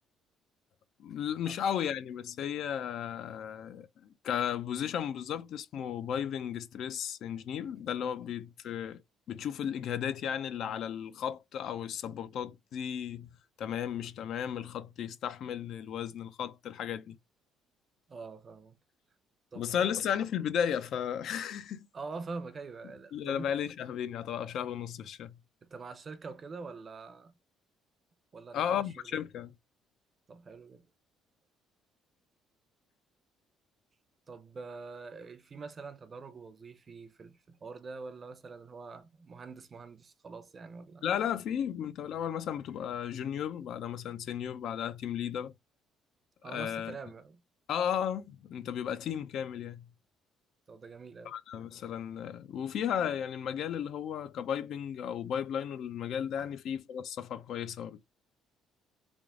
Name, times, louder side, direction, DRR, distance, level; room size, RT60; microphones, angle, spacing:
voice 1, 1.0-9.0 9.3-13.3 13.6-17.2 19.6-21.9 23.1-25.4 28.5-29.5 41.0-45.5 46.4-46.9 47.7-49.9 51.2-58.0, left 9 dB, 65° left, 0.5 m, -34 dB
voice 2, 18.1-18.8 19.5-19.9 21.9-23.5 25.6-27.3 28.3-29.2 30.3-30.9 34.3-41.1 46.4-47.4 50.7-51.4 56.4-56.5, right 4 dB, 35° right, 0.7 m, -45 dB
3.5 x 2.4 x 3.6 m
cardioid pair, 105°, 0 cm